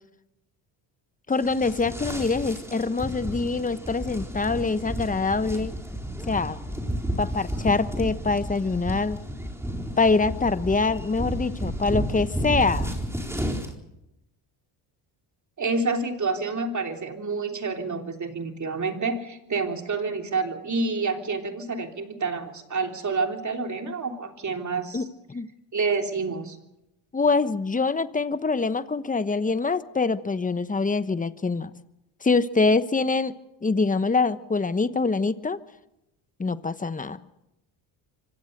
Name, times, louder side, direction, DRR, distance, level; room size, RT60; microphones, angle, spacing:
voice 1, 1.3-5.7 6.3-6.6 7.2-9.2 10.0-12.9 24.9-25.5 27.1-31.7 32.2-33.3 33.6-35.6 36.4-37.2, left 4 dB, 15° left, 13 dB, 1.1 m, -24 dB
sound 1, 1.3-13.7, equal, 5° right, 4.1 m, -32 dB
voice 2, 15.6-25.1 25.7-26.6, right 4 dB, 35° right, 4 dB, 3.4 m, -28 dB
25.0 x 16.5 x 6.7 m, 0.90 s
supercardioid pair, 75°, 50 cm